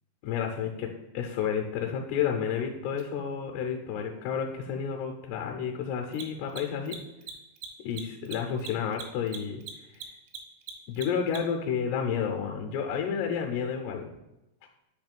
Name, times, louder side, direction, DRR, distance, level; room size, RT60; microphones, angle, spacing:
voice 1, 0.2-7.0 7.8-9.6 10.9-14.1, left 7 dB, 80° left, 2 dB, 2.5 m, -31 dB
Mechanisms, 3.0-3.1 6.0-11.7, right 7 dB, 85° right, 2.7 m, -41 dB
8.9 x 3.1 x 5.2 m, 0.93 s
omnidirectional pair, 5.1 m